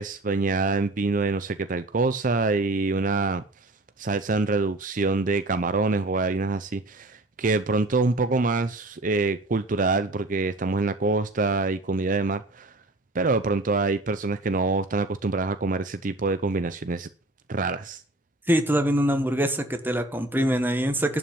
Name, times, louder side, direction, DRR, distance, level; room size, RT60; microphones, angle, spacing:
voice 1, 0.0-3.4 4.0-12.8 13.1-17.1 17.5-18.0, right 3 dB, 50° right, 0.6 m, -25 dB
voice 2, 18.5-21.2, equal, 10° right, 1.6 m, -24 dB
11.5 x 6.1 x 8.6 m
head